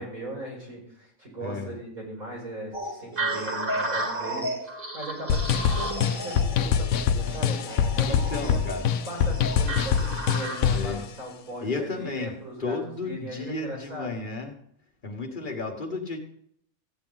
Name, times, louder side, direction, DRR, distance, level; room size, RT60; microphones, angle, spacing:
voice 1, 0.0-8.6 9.1-14.2, right 1 dB, 80° right, -3 dB, 6.1 m, -38 dB
voice 2, 1.4-1.7 8.1-8.9 10.7-11.0 11.6-14.6 15.0-16.2, left 3 dB, 35° left, 3 dB, 1.6 m, -33 dB
sound 1, 2.7-10.9, right 1 dB, 40° right, 2.2 m, -33 dB
sound 2, 5.3-10.9, left 8 dB, 80° left, 1.1 m, -24 dB
15.0 x 8.8 x 4.0 m, 0.69 s
omnidirectional pair, 1.5 m